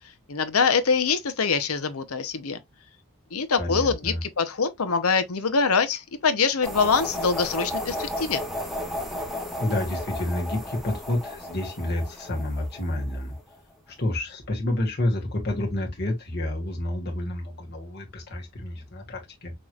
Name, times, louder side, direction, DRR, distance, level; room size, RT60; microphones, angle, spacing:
voice 1, 0.3-2.6 3.3-8.4, left 5 dB, 80° left, 0.8 m, -24 dB
voice 2, 3.6-4.2 9.6-13.3 14.0-19.5, left 1 dB, 45° left, 1.7 m, -29 dB
sound 1, 6.6-13.5, left 1 dB, ahead, 0.9 m, -33 dB
6.0 x 3.1 x 2.4 m
head